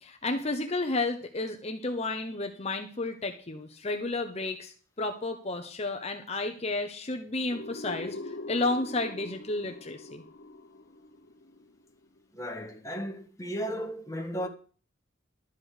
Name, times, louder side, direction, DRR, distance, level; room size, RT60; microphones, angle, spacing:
voice 1, 0.0-10.2, left 2 dB, 30° left, 0.9 m, -32 dB
sound 1, 7.5-12.2, left 2 dB, 60° left, 1.1 m, -43 dB
voice 2, 12.3-14.5, equal, 15° left, 1.5 m, -35 dB
12.0 x 8.4 x 5.0 m
head